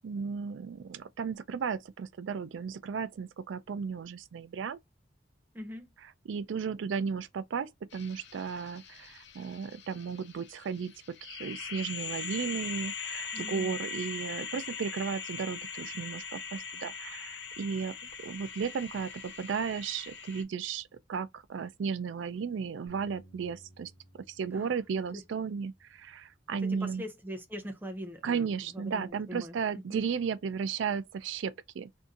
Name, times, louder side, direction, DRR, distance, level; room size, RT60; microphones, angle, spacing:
voice 1, 0.0-4.8 6.3-10.9 11.2-17.9 18.2-27.0 28.2-31.9, right 6 dB, 80° right, 0.4 m, -35 dB
voice 2, 5.5-5.9 13.3-13.8 24.5-24.7 25.1-25.2 26.6-30.0, equal, 10° right, 0.6 m, -42 dB
sound 1, 7.9-20.4, left 6 dB, 70° left, 0.7 m, -41 dB
Bass guitar, 22.9-27.3 27.9-29.1, right 1 dB, 25° left, 1.2 m, -61 dB
2.7 x 2.6 x 3.6 m
head